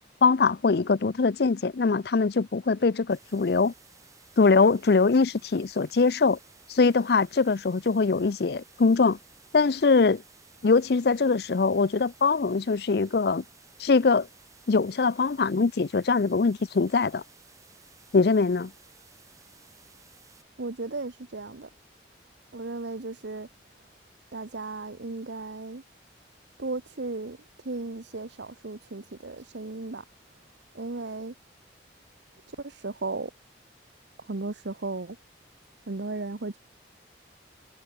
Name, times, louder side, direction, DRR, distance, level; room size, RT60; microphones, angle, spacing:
voice 1, 0.2-3.7 4.4-6.4 6.7-9.2 9.5-10.2 10.6-13.4 13.8-14.3 14.7-17.2 18.1-18.7, left 4 dB, 55° left, 0.5 m, -22 dB
sound 1, 3.1-20.4, right 5 dB, 15° right, 4.8 m, -57 dB
voice 2, 20.6-21.7 22.5-23.5 24.3-25.8 26.6-27.4 27.6-30.0 30.7-31.3 32.6-33.3 34.3-35.2 35.9-36.6, right 3 dB, 70° right, 1.0 m, -35 dB
head